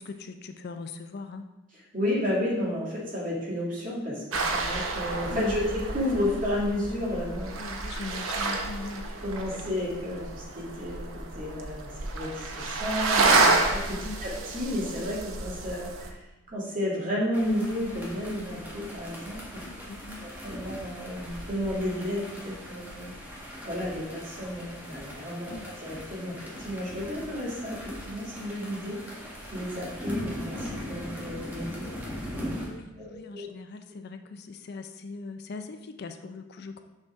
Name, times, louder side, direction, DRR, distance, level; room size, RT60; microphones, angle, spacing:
voice 1, 0.0-1.5 5.3-5.6 7.6-9.1 14.0-14.2 19.7-20.3 25.5-25.7 32.6-36.8, left 3 dB, 50° left, 7 dB, 0.4 m, -40 dB
voice 2, 1.9-7.5 9.2-16.2 16.5-19.4 20.2-23.1 23.6-25.5 25.8-29.0 29.5-31.9 32.3-32.6 33.0-33.5, left 1 dB, 40° right, -5 dB, 2.1 m, -32 dB
sound 1, 4.3-16.1, right 3 dB, 85° right, 0.8 m, -29 dB
sound 2, 17.3-32.7, equal, 10° right, 1.5 m, -40 dB
6.5 x 6.0 x 3.6 m, 0.99 s
head